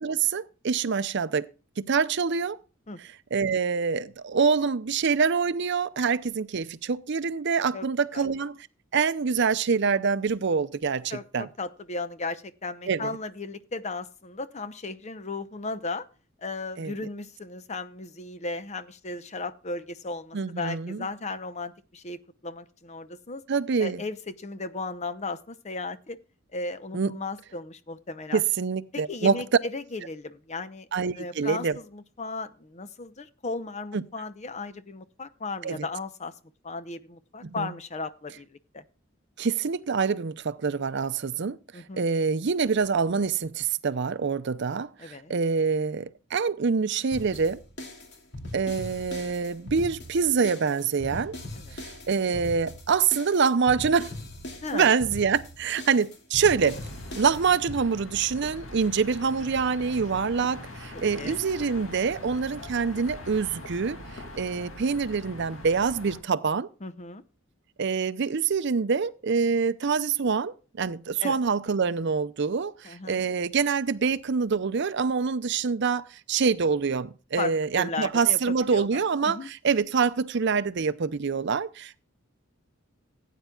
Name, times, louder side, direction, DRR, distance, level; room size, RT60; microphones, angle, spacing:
voice 1, 0.0-1.5 1.8-2.6 3.3-8.6 8.9-11.5 12.9-13.1 16.8-16.9 20.3-21.0 23.5-24.0 26.9-27.1 28.3-29.4 30.9-31.8 33.9-34.0 35.6-35.8 37.4-37.7 39.4-47.6 48.5-51.3 51.7-54.1 54.7-56.8 57.1-64.0 64.4-66.7 67.8-82.0, right 5 dB, 55° right, 0.5 m, -26 dB
voice 2, 11.1-16.1 16.4-22.2 22.4-23.4 23.8-26.2 26.5-28.4 28.9-30.9 31.2-36.3 36.6-38.8 41.7-42.1 45.0-45.3 51.5-51.9 54.6-54.9 60.9-61.4 66.8-67.2 71.2-71.4 72.8-73.2 77.4-79.5, left 3 dB, 35° left, 0.7 m, -36 dB
sound 1, 47.1-57.8, left 1 dB, 55° left, 2.5 m, -40 dB
sound 2, 56.5-66.2, left 1 dB, 70° left, 2.4 m, -42 dB
17.0 x 9.2 x 2.3 m
head